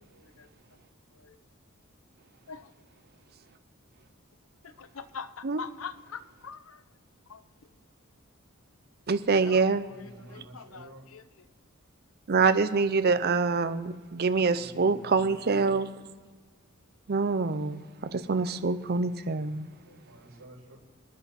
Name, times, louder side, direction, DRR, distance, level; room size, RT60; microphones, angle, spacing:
voice 1, 0.1-0.5 1.2-1.4 2.5-2.7 4.6-6.8 7.3-7.4 9.4-9.7 10.0-11.2 19.9-20.0, left 6 dB, 75° left, 13 dB, 0.7 m, -43 dB
voice 2, 9.1-9.9 12.3-15.9 17.1-19.7, right 4 dB, 50° right, 11 dB, 0.6 m, -25 dB
voice 3, 9.8-11.1 14.3-15.9 20.0-20.8, right 1 dB, 85° right, -10 dB, 5.2 m, -50 dB
27.0 x 9.7 x 4.3 m, 1.4 s
head